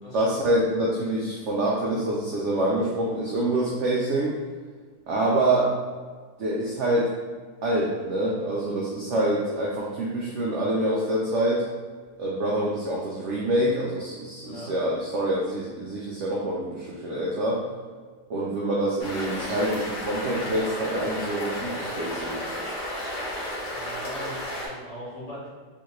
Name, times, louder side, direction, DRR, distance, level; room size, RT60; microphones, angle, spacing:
voice 1, 0.1-4.4 5.1-5.7 6.4-7.1 7.6-11.6 12.2-17.6 18.3-22.4, right 1 dB, 75° right, -4 dB, 0.6 m, -26 dB
voice 2, 14.4-14.7 23.7-25.5, equal, 55° left, -7 dB, 1.2 m, -40 dB
sound 1, 19.0-24.7, left 1 dB, 80° left, 1.7 m, -33 dB
3.5 x 2.4 x 2.9 m, 1.5 s
omnidirectional pair, 1.7 m